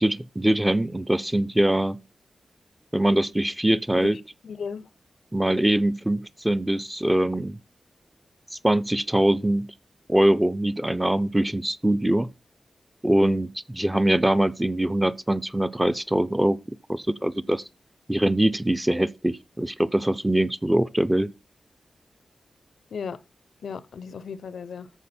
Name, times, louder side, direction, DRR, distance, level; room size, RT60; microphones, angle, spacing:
voice 1, 0.0-2.0 2.9-4.2 5.3-7.6 8.6-9.7 10.1-12.3 13.0-16.6 16.9-17.6 18.1-21.3, right 1 dB, 10° right, 0.4 m, -23 dB
voice 2, 4.0-4.9 22.9-23.2 23.6-24.9, left 6 dB, 85° left, 0.6 m, -36 dB
14.0 x 4.6 x 4.3 m
wide cardioid pair, 145°, 0 cm